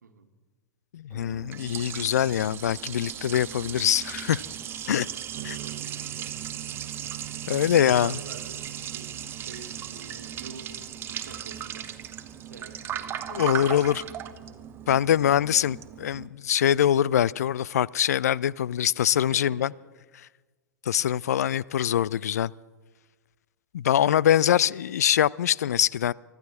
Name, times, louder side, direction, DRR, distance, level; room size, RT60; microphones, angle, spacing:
voice 1, 0.0-0.3 4.8-6.6 7.5-12.0 12.4-13.1 19.3-19.9 24.4-24.8, right 5 dB, 70° right, 1.5 m, -47 dB
voice 2, 0.9-4.4 4.9-5.1 5.4-5.6 7.5-8.1 13.3-14.0 14.9-19.7 20.9-22.5 23.7-26.1, left 10 dB, 60° left, 0.4 m, -23 dB
Liquid, 1.1-16.3, right 10 dB, 25° right, 0.9 m, -37 dB
sound 1, 5.3-15.1, right 16 dB, 40° right, 1.3 m, -46 dB
24.5 x 13.5 x 4.3 m
figure-of-eight pair, 100°, 10 cm